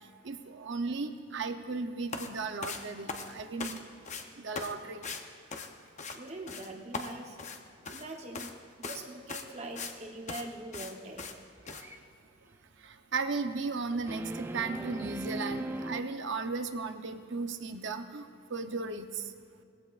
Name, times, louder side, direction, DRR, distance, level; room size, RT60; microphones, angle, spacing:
voice 1, 0.2-3.8 4.4-5.0 12.8-19.2, right 4 dB, 55° right, 8 dB, 0.7 m, -35 dB
sound 1, 2.1-2.3 2.6-4.2 4.6-4.7 5.0-5.2 5.5-6.2 6.5-6.7 6.9-8.1 8.3-8.5 8.8-9.0 9.3-10.0 10.3-10.4 10.7-10.9 11.2-11.3 11.7-11.8, left 4 dB, 35° left, 0.7 m, -39 dB
voice 2, 6.1-7.4 7.9-8.5 8.8-11.3, right 2 dB, 30° right, 2 dB, 0.9 m, -43 dB
sound 2, 11.6-12.0 14.0-16.0, right 1 dB, 10° right, 0.3 m, -38 dB
20.0 x 15.5 x 2.5 m, 2.3 s
head